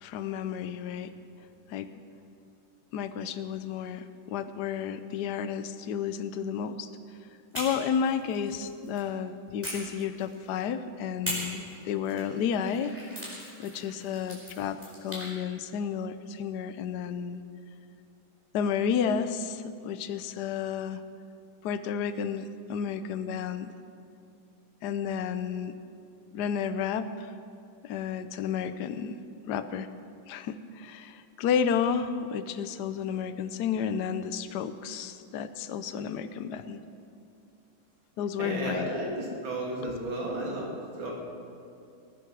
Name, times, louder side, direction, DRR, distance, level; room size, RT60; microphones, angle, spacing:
voice 1, 0.0-1.1 1.7-1.9 2.9-6.9 7.5-13.0 13.6-17.4 18.5-21.0 21.6-23.7 24.8-25.7 26.3-27.3 27.8-29.2 29.5-29.9 30.3-36.8 38.2-38.9 39.8-39.9, left 7 dB, 65° left, 11 dB, 1.0 m, -31 dB
sound 1, 7.5-9.1 9.6-10.6 11.2-15.3, equal, 5° right, 4.7 m, -40 dB
voice 2, 38.4-40.7 41.0-41.1, right 1 dB, 65° right, -3 dB, 3.3 m, -33 dB
19.0 x 10.0 x 6.1 m, 2.5 s
omnidirectional pair, 2.3 m